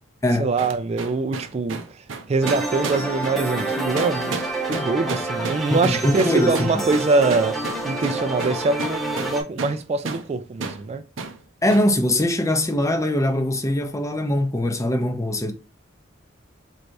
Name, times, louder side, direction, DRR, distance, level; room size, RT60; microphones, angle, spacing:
voice 1, 0.4-4.4 4.7-11.0, right 3 dB, 35° right, 0.3 m, -24 dB
sound 1, 0.6-9.8 10.1-10.3 10.6-10.8 11.2-11.4 11.7-11.9, right 4 dB, 75° right, 0.6 m, -32 dB
sound 2, 2.4-9.4, right 2 dB, ahead, 0.9 m, -28 dB
voice 2, 5.7-6.8 11.6-15.5, left 1 dB, 15° left, 0.6 m, -22 dB
4.5 x 3.2 x 2.6 m
head